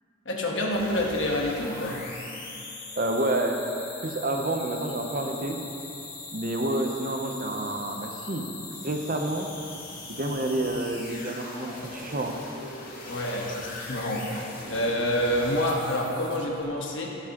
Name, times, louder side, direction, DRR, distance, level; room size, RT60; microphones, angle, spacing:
voice 1, 0.2-2.0 13.1-17.2, left 1 dB, 65° left, -1 dB, 1.3 m, -28 dB
sound 1, 0.7-16.6, left 2 dB, 45° left, 1.9 m, -41 dB
voice 2, 3.0-3.7 4.0-5.6 6.3-8.5 8.8-9.5 10.1-12.4, right 1 dB, 45° right, 3 dB, 0.8 m, -29 dB
15.5 x 7.1 x 3.0 m, 2.9 s
head